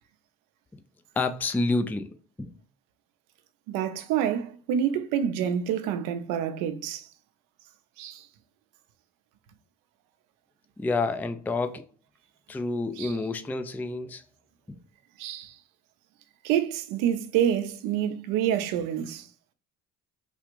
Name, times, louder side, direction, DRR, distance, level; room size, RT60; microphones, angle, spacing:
voice 1, 1.2-2.1 2.4-2.6 10.8-11.9 12.5-14.2 14.7-14.8, left 3 dB, 5° left, 0.3 m, -28 dB
voice 2, 3.7-7.1 8.0-8.3 13.0-13.1 15.2-15.6 16.4-19.3, right 9 dB, 85° right, 0.6 m, -27 dB
3.4 x 2.4 x 2.9 m
supercardioid pair, 75°, 31 cm